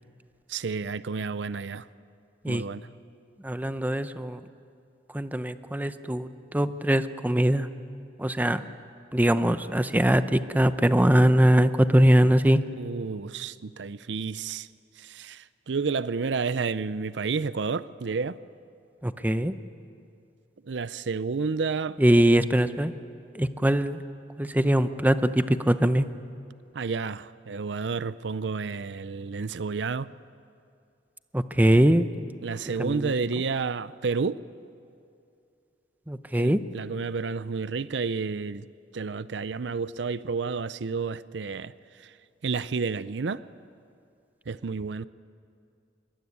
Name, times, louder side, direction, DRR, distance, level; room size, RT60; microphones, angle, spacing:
voice 1, 0.5-1.9 2.5-2.8 12.8-14.7 15.0-18.4 20.6-22.0 26.7-30.1 32.4-34.4 36.4-38.7 38.9-41.7 42.0-42.1 42.4-43.4 44.5-45.1, right 4 dB, 75° right, 0.6 m, -30 dB
voice 2, 3.4-4.4 5.1-7.7 8.2-8.6 9.1-12.6 19.0-19.5 22.0-22.9 23.3-24.0 24.4-26.1 31.3-32.1 32.8-33.1 36.1-36.6, right 1 dB, 10° right, 0.7 m, -22 dB
24.5 x 22.5 x 9.6 m
head